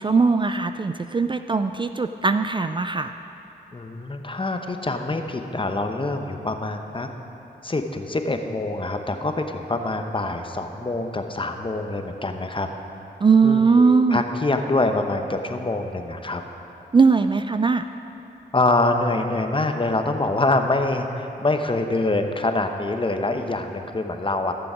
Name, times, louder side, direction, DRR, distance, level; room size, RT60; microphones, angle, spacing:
voice 1, 0.0-3.1 13.2-14.2 16.9-17.8, right 4 dB, 25° right, 9 dB, 0.4 m, -19 dB
voice 2, 3.7-7.1 7.6-12.7 13.4-16.4 18.5-24.5, left 2 dB, 30° left, 5 dB, 0.9 m, -25 dB
15.5 x 6.9 x 5.1 m, 2.9 s
cardioid pair, 55°, 18 cm